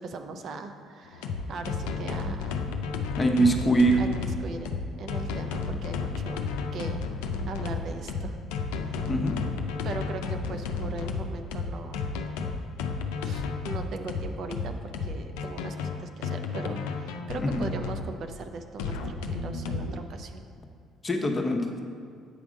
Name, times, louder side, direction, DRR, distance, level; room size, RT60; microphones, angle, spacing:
voice 1, 0.0-2.7 4.0-7.1 7.5-8.4 8.9-9.1 9.8-12.1 13.2-20.4, right 3 dB, 60° right, 6 dB, 0.5 m, -39 dB
sound 1, 1.1-18.1 18.8-20.0, left 4 dB, 85° left, 0.5 m, -32 dB
voice 2, 3.2-4.0 9.1-9.3 17.4-17.6 21.0-21.8, right 1 dB, 25° left, 3 dB, 0.9 m, -23 dB
8.3 x 3.5 x 6.3 m, 2.3 s
supercardioid pair, 65°, 0 cm